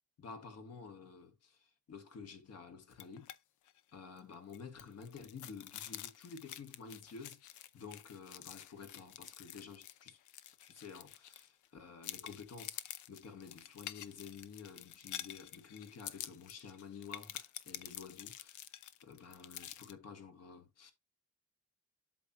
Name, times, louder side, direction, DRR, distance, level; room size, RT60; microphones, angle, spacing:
voice 1, 0.2-3.3 3.9-10.2 10.6-12.8 13.1-18.7 19.0-20.9, left 5 dB, 55° left, 1.9 m, -51 dB
sound 1, 2.9-3.4 3.7-3.8 4.2-11.7 12.0-19.9, left 12 dB, 75° left, 0.7 m, -49 dB
8.2 x 6.2 x 2.9 m
cardioid pair, 90°, 30 cm